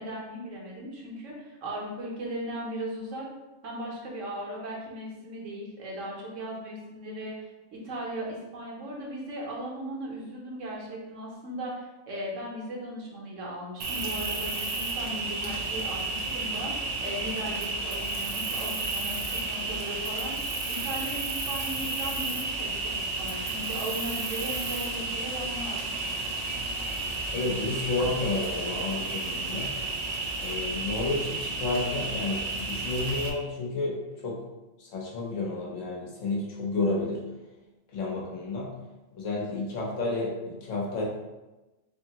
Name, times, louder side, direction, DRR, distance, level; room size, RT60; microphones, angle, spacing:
voice 1, 0.0-3.3 3.6-7.4 7.7-20.4 20.7-25.8, right 1 dB, 75° right, -3 dB, 1.2 m, -37 dB
Cricket, 13.8-33.3, right 3 dB, 90° right, 0.3 m, -32 dB
voice 2, 27.3-29.7 30.4-34.0 34.2-34.4 34.8-37.2 37.9-38.7 39.2-41.1, left 3 dB, 75° left, -3 dB, 1.2 m, -31 dB
3.6 x 3.2 x 2.8 m, 1.1 s
omnidirectional pair, 1.3 m